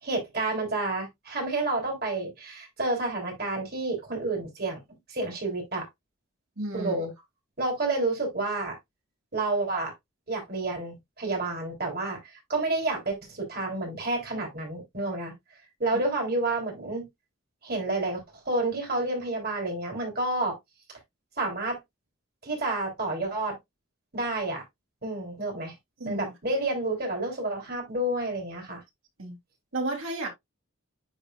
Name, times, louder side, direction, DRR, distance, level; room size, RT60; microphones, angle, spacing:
voice 1, 0.0-4.8 5.1-5.8 6.7-7.1 7.6-8.8 9.3-9.9 10.3-15.3 15.8-17.0 17.6-20.5 21.4-21.8 22.4-23.6 24.1-24.6 25.0-25.7 26.0-28.8, right 2 dB, 45° right, 3.4 m, -29 dB
voice 2, 6.6-7.1 26.0-26.6 29.2-29.4 29.7-30.3, right 2 dB, 80° right, 3.1 m, -33 dB
10.5 x 4.2 x 2.4 m
head